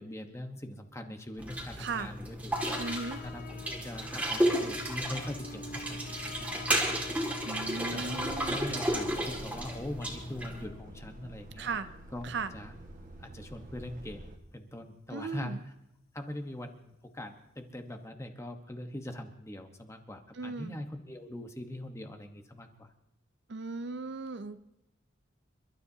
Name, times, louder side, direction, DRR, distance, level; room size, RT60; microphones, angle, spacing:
voice 1, 0.0-6.9 7.9-8.2 8.5-11.7 12.1-12.7 13.2-14.3 14.5-15.7 16.1-22.9, left 1 dB, 15° left, 5 dB, 1.1 m, -42 dB
sound 1, 1.4-10.6, equal, 5° right, 2.1 m, -33 dB
voice 2, 1.8-2.1 2.8-3.2 7.5-8.6 11.6-11.9 12.2-12.5 15.1-15.6 20.4-20.8 23.5-24.6, right 4 dB, 55° right, 12 dB, 0.5 m, -37 dB
sound 2, 2.5-12.8 13.2-13.3 16.5-16.6 16.8-16.9 17.3-17.4, left 5 dB, 45° left, 0.8 m, -49 dB
Truck, 8.3-14.4, right 1 dB, 40° right, 1.5 m, -49 dB
29.5 x 12.5 x 2.8 m, 0.83 s
head